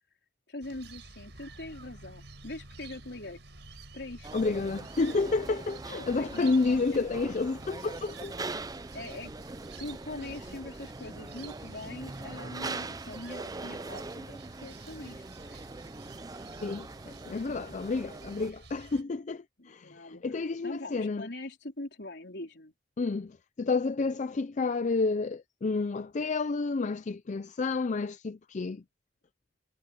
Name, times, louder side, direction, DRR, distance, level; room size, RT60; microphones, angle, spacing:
voice 1, 0.5-3.4 3.9-4.3 5.9-7.1 8.9-9.3 9.8-15.6 19.6-20.2 20.6-22.7, left 2 dB, 70° left, 4.4 m, -42 dB
sound 1, 0.6-19.0, right 3 dB, 75° right, 5.8 m, -50 dB
sound 2, 4.2-18.5, right 3 dB, 20° right, 0.6 m, -42 dB
voice 2, 4.3-8.3 16.6-21.3 23.0-28.8, left 3 dB, 45° left, 0.5 m, -30 dB
head